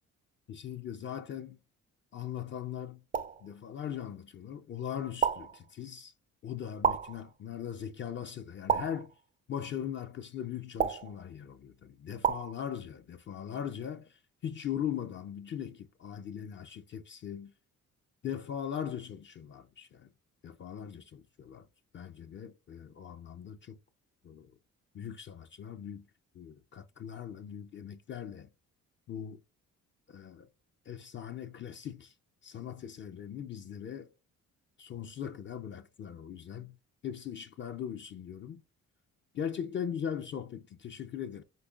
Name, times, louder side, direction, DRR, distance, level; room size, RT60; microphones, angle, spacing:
voice 1, 0.5-1.6 2.1-3.0 3.4-6.1 6.4-9.1 9.5-17.5 18.2-20.1 20.4-21.7 21.9-23.8 24.2-24.5 24.9-26.1 26.3-28.5 29.1-29.4 30.1-30.5 30.9-32.1 32.4-34.1 34.8-36.8 37.0-38.6 39.3-41.4, left 9 dB, 40° left, 0.4 m, -40 dB
sound 1, 3.1-3.5 5.2-5.6 6.8-7.2 8.7-9.1 10.8-11.2 12.2-12.5, right 7 dB, 30° right, 0.4 m, -30 dB
5.3 x 3.7 x 2.3 m
cardioid pair, 90°, 30 cm